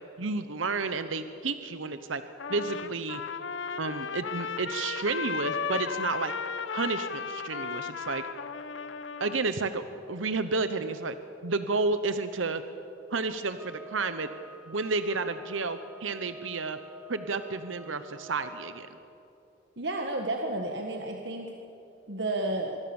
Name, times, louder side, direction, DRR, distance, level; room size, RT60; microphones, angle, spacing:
voice 1, 0.2-2.2 2.5-3.2 3.8-6.3 6.7-8.2 9.2-11.2 11.4-12.6 13.1-14.3 14.7-16.8 17.1-18.9, right 3 dB, 90° right, 10 dB, 1.0 m, -31 dB
Trumpet, 2.4-9.5, left 6 dB, 80° left, 0.9 m, -35 dB
sound 1, 13.5-19.0, right 2 dB, 5° right, 1.0 m, -49 dB
voice 2, 19.8-21.5 22.1-22.8, right 2 dB, 60° right, 2 dB, 1.6 m, -31 dB
25.0 x 23.0 x 7.2 m, 2.9 s
head